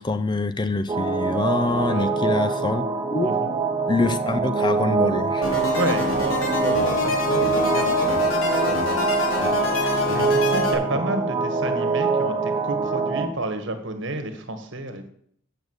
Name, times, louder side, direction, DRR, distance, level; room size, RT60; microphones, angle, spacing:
voice 1, 0.0-2.8 3.1-3.4 3.9-5.5 10.9-11.0, left 3 dB, 20° left, 0.5 m, -25 dB
sound 1, 0.9-13.3, right 4 dB, 20° right, 1.4 m, -24 dB
voice 2, 1.8-2.4 3.2-3.5 5.7-15.1, right 2 dB, 65° right, 1.5 m, -31 dB
sound 2, 5.4-10.7, left 2 dB, 85° left, 3.1 m, -25 dB
7.1 x 6.6 x 7.9 m
head